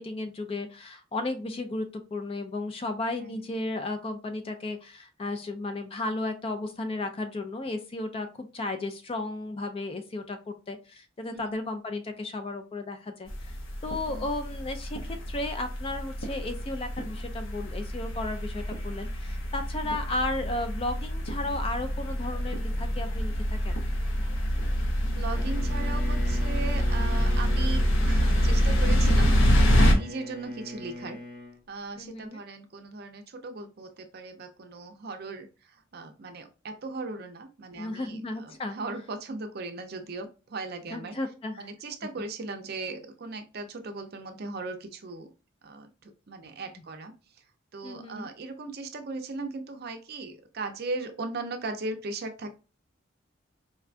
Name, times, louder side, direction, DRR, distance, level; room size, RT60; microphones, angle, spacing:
voice 1, 0.0-13.6 13.8-23.8 32.0-32.4 37.8-38.8 40.9-41.7 47.8-48.3, left 2 dB, 30° left, 8 dB, 0.3 m, -34 dB
sound 1, 13.3-29.9, equal, 75° left, 0.7 m, -26 dB
voice 2, 25.0-31.2 31.7-41.2 41.6-45.3 45.6-47.4 47.7-52.5, right 3 dB, 50° right, 6 dB, 0.5 m, -38 dB
Bowed string instrument, 25.3-31.6, left 1 dB, 25° right, 0.8 m, -41 dB
4.4 x 2.2 x 2.4 m, 0.33 s
head